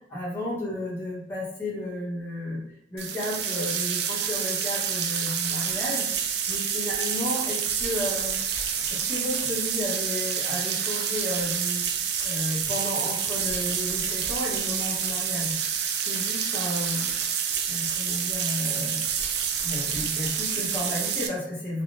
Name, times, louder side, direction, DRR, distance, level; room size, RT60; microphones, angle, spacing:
voice 1, 0.1-2.6 2.9-8.4 8.9-11.8 12.2-15.6 16.0-17.1 17.7-19.0 19.6-21.8, left 1 dB, 10° left, -7 dB, 1.0 m, -33 dB
sound 1, 3.0-21.3, right 7 dB, 70° right, 0.4 m, -28 dB
3.4 x 2.3 x 2.5 m, 0.79 s
head